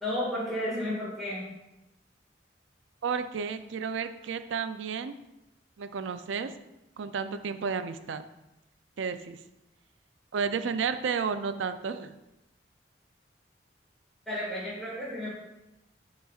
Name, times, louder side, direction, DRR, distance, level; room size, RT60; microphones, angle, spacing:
voice 1, 0.0-1.5 14.3-15.3, left 1 dB, ahead, -9 dB, 1.8 m, -32 dB
voice 2, 3.0-5.2 5.8-6.5 7.0-8.2 9.0-9.4 10.3-12.1, right 6 dB, 90° right, 10 dB, 0.4 m, -32 dB
11.0 x 4.0 x 2.4 m, 0.94 s
head